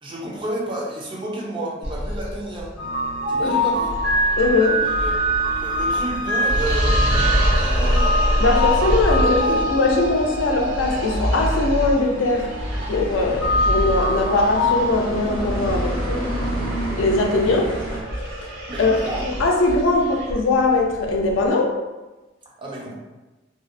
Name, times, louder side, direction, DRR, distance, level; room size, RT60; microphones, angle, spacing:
voice 1, 0.0-2.7 3.3-3.9 4.8-5.2 5.5-7.3 7.5-8.2 9.1-9.6 18.7-19.2 22.6-22.9, right 1 dB, 25° right, -3 dB, 0.5 m, -31 dB
sound 1, 1.8-21.5, equal, 65° right, 0.6 m, -26 dB
sound 2, 2.8-14.8, equal, 85° right, 1.3 m, -24 dB
voice 2, 4.4-4.8 8.4-12.5 12.9-16.3 17.0-17.7 18.8-21.8, left 2 dB, 80° left, 1 dB, 0.4 m, -21 dB
sound 3, 7.8-18.0, right 1 dB, 50° right, 1.1 m, -31 dB
2.7 x 2.0 x 2.4 m, 1.1 s
head